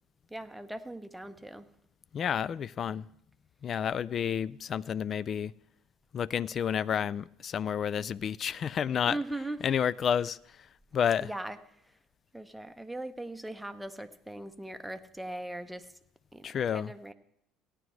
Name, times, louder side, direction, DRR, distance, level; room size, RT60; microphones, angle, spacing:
voice 1, 0.3-1.7 9.0-9.7 11.2-11.6 12.3-15.9 16.3-17.1, right 1 dB, 5° right, 0.8 m, -39 dB
voice 2, 2.1-3.1 3.6-5.5 6.1-9.2 9.6-10.4 10.9-11.3 16.4-16.9, left 8 dB, 45° left, 0.3 m, -30 dB
16.5 x 9.6 x 3.2 m
hypercardioid pair, 60°, 0 cm